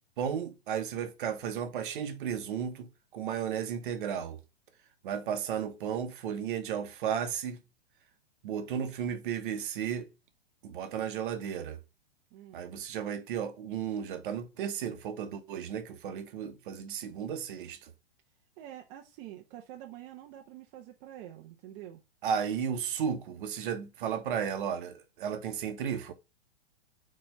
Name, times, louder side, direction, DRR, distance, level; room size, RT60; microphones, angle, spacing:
voice 1, 0.2-2.9 3.1-4.4 5.0-7.6 8.4-10.1 10.6-11.8 12.5-17.9 22.2-26.1, right 8 dB, 55° right, 1.3 m, -34 dB
voice 2, 12.3-12.6 18.6-22.0, right 12 dB, 40° right, 0.9 m, -47 dB
4.4 x 4.3 x 5.1 m
hypercardioid pair, 115°, 31 cm